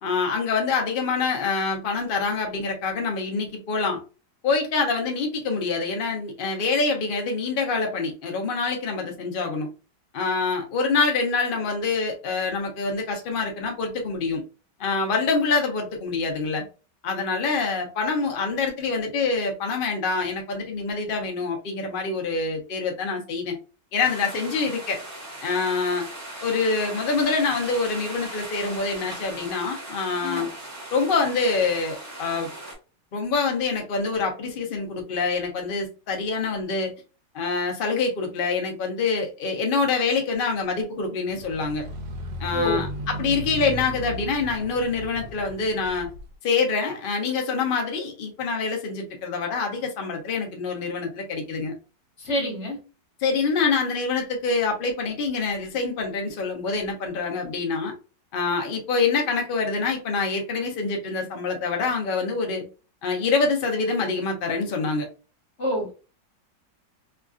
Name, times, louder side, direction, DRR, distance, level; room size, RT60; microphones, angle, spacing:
voice 1, 0.0-4.0 4.4-9.7 10.1-14.4 14.8-16.6 17.0-23.6 23.9-25.0 25.4-26.1 26.4-30.5 30.9-32.5 33.1-36.9 37.3-41.8 42.4-46.1 46.4-51.7 53.2-57.9 58.3-62.6 63.0-65.1, left 4 dB, 80° left, 2 dB, 0.4 m, -25 dB
sound 1, 24.0-32.8, right 1 dB, 35° right, 1.3 m, -38 dB
sound 2, 41.3-46.3, equal, 85° right, 1.4 m, -35 dB
voice 2, 42.5-42.8 52.2-52.8 65.6-65.9, equal, 40° left, -1 dB, 1.5 m, -27 dB
3.4 x 2.4 x 2.4 m, 0.33 s
omnidirectional pair, 1.9 m